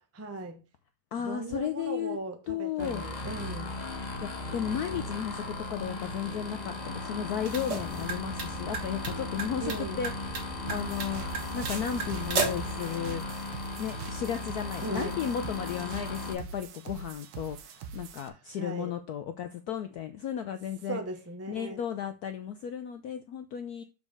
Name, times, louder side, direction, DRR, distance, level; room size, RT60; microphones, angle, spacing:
voice 1, 0.1-0.6 1.2-3.7 9.6-10.0 14.8-15.2 18.6-18.9 20.9-21.8, right 2 dB, 20° right, 0.4 m, -38 dB
voice 2, 1.1-2.2 2.5-3.0 4.2-5.4 5.7-11.2 11.5-13.2 13.8-21.0 21.5-23.8, left 9 dB, 75° left, 0.8 m, -34 dB
sound 1, 2.8-16.3, left 2 dB, 25° left, 1.1 m, -37 dB
sound 2, 7.3-12.7, right 5 dB, 55° right, 2.2 m, -35 dB
sound 3, 10.7-18.3, right 5 dB, 75° right, 1.6 m, -43 dB
7.1 x 4.8 x 5.3 m
omnidirectional pair, 2.3 m